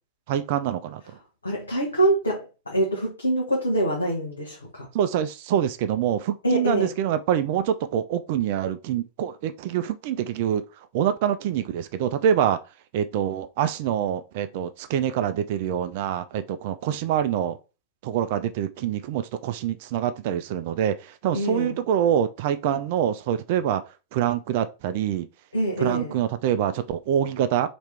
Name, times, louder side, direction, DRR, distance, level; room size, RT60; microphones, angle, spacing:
voice 1, 0.3-1.0 4.9-10.6 10.9-12.6 12.9-17.6 18.0-23.8 24.1-25.3 25.8-27.7, right 10 dB, 50° right, 0.3 m, -25 dB
voice 2, 1.4-4.9 6.4-6.9 21.3-21.8 25.5-26.1, right 1 dB, 80° left, 0.9 m, -25 dB
3.0 x 2.9 x 3.3 m
figure-of-eight pair, 90°, 0 cm